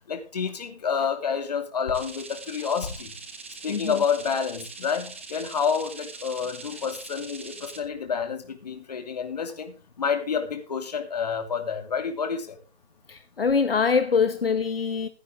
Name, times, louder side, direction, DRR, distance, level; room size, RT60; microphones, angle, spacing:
voice 1, 0.1-3.1 3.6-12.5, left 6 dB, 40° left, 2.6 m, -29 dB
sound 1, 1.9-7.8, right 4 dB, 10° right, 0.7 m, -42 dB
voice 2, 3.7-4.0 6.7-6.8 13.1-15.1, left 5 dB, 60° left, 1.2 m, -24 dB
15.5 x 11.5 x 3.6 m
figure-of-eight pair, 165°, 32 cm